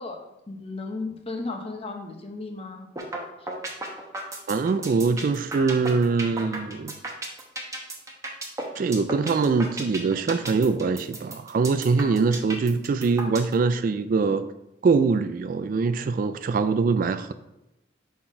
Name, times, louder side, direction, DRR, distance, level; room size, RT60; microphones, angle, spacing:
voice 1, 0.0-2.9, left 3 dB, 35° left, 0.9 m, -35 dB
sound 1, 3.0-3.2 3.5-13.5, right 2 dB, 20° right, 1.0 m, -33 dB
voice 2, 4.5-7.0 8.7-14.4 14.8-17.3, right 4 dB, 50° right, 0.3 m, -23 dB
5.8 x 4.2 x 4.8 m
head